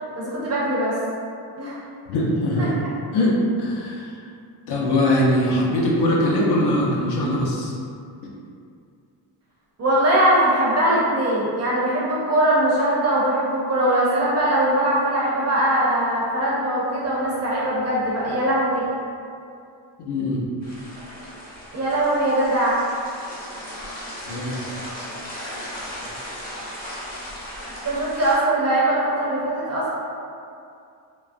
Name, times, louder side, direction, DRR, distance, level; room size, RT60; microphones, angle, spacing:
voice 1, 0.2-1.0 1.6-1.8 9.8-18.9 21.7-22.8 27.8-29.9, right 1 dB, 35° right, -6 dB, 0.4 m, -21 dB
voice 2, 2.1-2.8 3.1-4.2 4.7-7.7 8.2-8.3 20.0-20.4 24.3-24.7, left 1 dB, 60° left, -4 dB, 0.6 m, -21 dB
sound 1, 20.6-28.4, equal, 20° left, 0.6 m, -36 dB
3.0 x 2.3 x 2.5 m, 2.4 s
cardioid pair, 175°, 46 cm